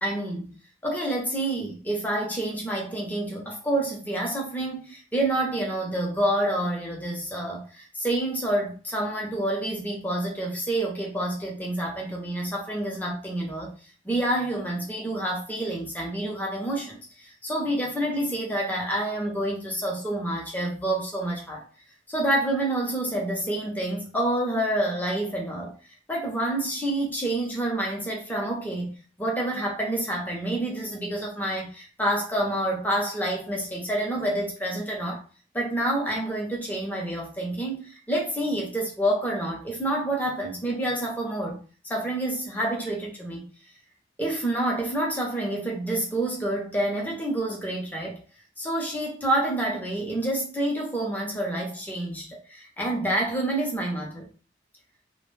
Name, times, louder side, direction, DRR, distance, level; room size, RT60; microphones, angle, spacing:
voice 1, 0.0-0.5 0.8-13.7 14.0-21.6 22.1-25.8 26.1-35.2 35.5-41.6 41.9-43.5 44.2-48.2 48.6-54.3, right 1 dB, 10° left, 0.6 m, -28 dB
2.4 x 2.1 x 3.1 m
head